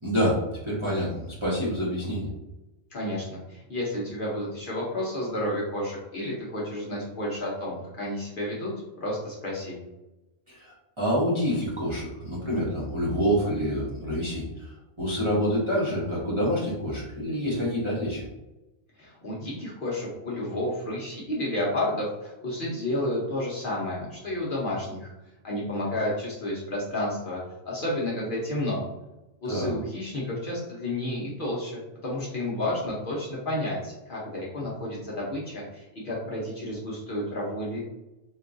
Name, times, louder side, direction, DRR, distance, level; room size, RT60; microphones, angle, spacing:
voice 1, 0.0-2.3 10.5-14.7 15.0-18.2 29.5-29.7, equal, 25° right, -7 dB, 0.8 m, -27 dB
voice 2, 2.9-8.7 9.0-9.8 19.0-25.1 25.4-27.4 27.7-28.8 29.4-37.8, left 1 dB, 50° left, -5 dB, 0.8 m, -31 dB
4.4 x 2.2 x 2.5 m, 1.0 s
omnidirectional pair, 1.3 m